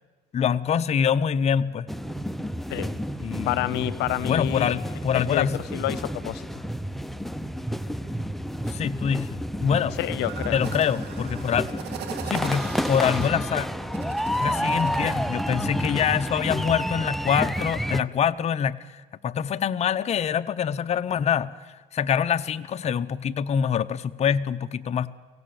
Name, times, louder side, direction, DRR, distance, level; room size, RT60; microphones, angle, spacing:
voice 1, 0.3-1.9 3.2-3.7 4.2-5.6 8.7-10.0 10.5-11.7 12.2-13.7 14.4-25.1, left 8 dB, 40° left, 10 dB, 0.7 m, -25 dB
sound 1, 1.9-18.0, equal, ahead, 0.6 m, -30 dB
voice 2, 3.4-4.8 5.1-6.5 10.0-10.6, left 15 dB, 90° left, 17 dB, 0.8 m, -28 dB
sound 2, 10.2-15.8, right 7 dB, 75° right, 2.4 m, -40 dB
24.5 x 17.0 x 7.0 m, 1.4 s
cardioid pair, 110°, 17 cm